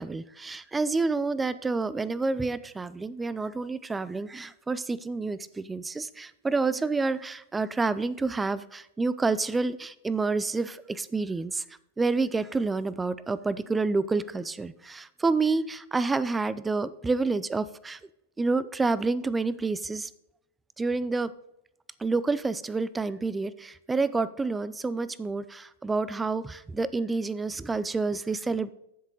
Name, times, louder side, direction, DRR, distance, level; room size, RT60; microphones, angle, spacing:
voice 1, 0.0-11.6 12.0-18.0 18.4-20.1 20.8-21.3 22.0-28.7, right 3 dB, 10° right, 17 dB, 0.4 m, -28 dB
10.0 x 7.3 x 4.0 m, 0.81 s
hypercardioid pair, 125°, 0 cm